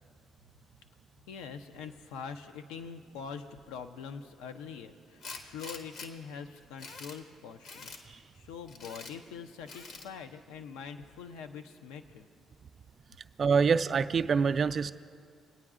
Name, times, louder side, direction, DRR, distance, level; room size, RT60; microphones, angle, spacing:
voice 1, 1.3-12.3, left 6 dB, 80° left, 7 dB, 0.5 m, -44 dB
Tools, 5.2-6.1 6.6-7.2 7.6-8.0 8.7-9.1 9.7-10.1, left 4 dB, 60° left, 0.9 m, -45 dB
voice 2, 13.4-14.9, right 5 dB, 45° right, 11 dB, 0.3 m, -25 dB
23.5 x 9.0 x 2.4 m, 2.2 s
hypercardioid pair, 55°, 0 cm